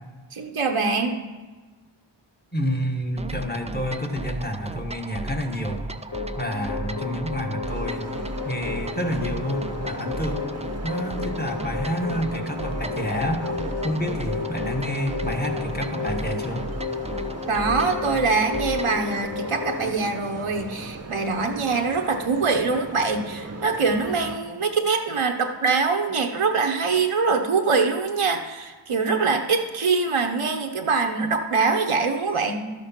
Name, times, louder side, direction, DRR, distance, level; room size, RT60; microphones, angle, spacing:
voice 1, 0.3-1.2 17.5-32.7, right 4 dB, 85° right, 4 dB, 0.9 m, -23 dB
voice 2, 2.5-5.8 6.4-8.1 8.4-10.4 10.8-13.5 13.8-16.7, equal, 20° left, 2 dB, 1.4 m, -29 dB
sound 1, 3.2-19.0, right 2 dB, 15° right, 0.4 m, -35 dB
sound 2, 6.1-19.9, left 6 dB, 40° left, 1.6 m, -33 dB
sound 3, 7.7-24.4, right 3 dB, 30° right, 0.8 m, -38 dB
12.5 x 6.8 x 5.8 m, 1.3 s
wide cardioid pair, 45°, 50 cm